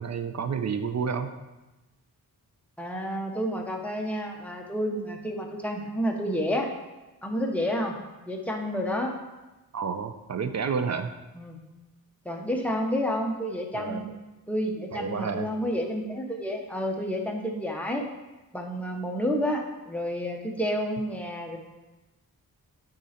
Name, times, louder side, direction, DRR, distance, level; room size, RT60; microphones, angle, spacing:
voice 1, 0.0-1.3 9.7-11.1 13.7-14.0 14.9-15.5, right 6 dB, 45° right, 9 dB, 0.5 m, -30 dB
voice 2, 2.8-6.7 7.2-7.9 8.3-9.1 11.4-11.6 12.2-14.1 14.5-18.1 18.5-21.6, equal, 5° left, 1 dB, 0.9 m, -30 dB
8.3 x 3.9 x 4.3 m, 1.1 s
wide cardioid pair, 115°, 37 cm